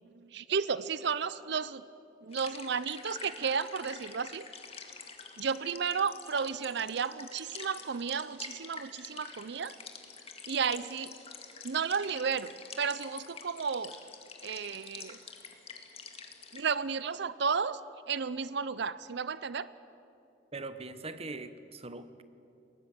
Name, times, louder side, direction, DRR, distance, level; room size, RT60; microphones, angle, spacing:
voice 1, 0.1-1.8 2.2-4.5 5.4-9.8 10.5-11.1 11.6-14.0 14.4-15.2 16.5-17.8 18.1-19.7, right 6 dB, 65° right, 16 dB, 0.6 m, -33 dB
sound 1, 2.3-16.6, left 5 dB, 35° left, 2.0 m, -47 dB
voice 2, 20.5-22.2, right 3 dB, 35° right, 12 dB, 1.0 m, -41 dB
22.5 x 19.0 x 8.1 m, 2.8 s
head